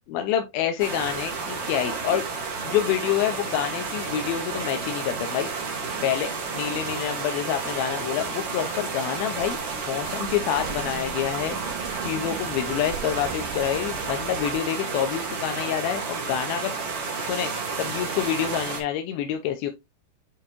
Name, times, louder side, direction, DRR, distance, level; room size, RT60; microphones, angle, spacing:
voice 1, 0.1-2.3 2.7-5.7 6.0-9.6 9.9-11.6 12.0-16.8 17.2-17.5 17.8-19.7, left 10 dB, 80° left, 2.3 m, -27 dB
sound 1, 0.8-18.8, right 4 dB, 50° right, 1.7 m, -31 dB
sound 2, 9.4-14.6, right 10 dB, 90° right, 2.0 m, -40 dB
8.5 x 3.8 x 2.9 m
omnidirectional pair, 4.8 m